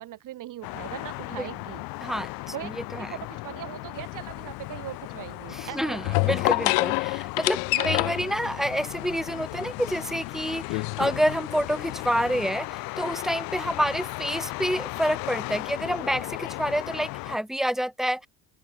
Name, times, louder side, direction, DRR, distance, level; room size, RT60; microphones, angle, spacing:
voice 1, 0.0-1.8 2.5-6.3 7.7-8.3, right 14 dB, 45° right, 3.1 m, -40 dB
sound 1, 0.6-17.4, left 22 dB, 55° left, 0.7 m, -37 dB
voice 2, 2.0-2.3 2.6-3.1 5.5-18.3, equal, ahead, 0.6 m, -28 dB
sound 2, 3.9-12.5, left 31 dB, 80° left, 1.6 m, -30 dB
cardioid pair, 160°, 43 cm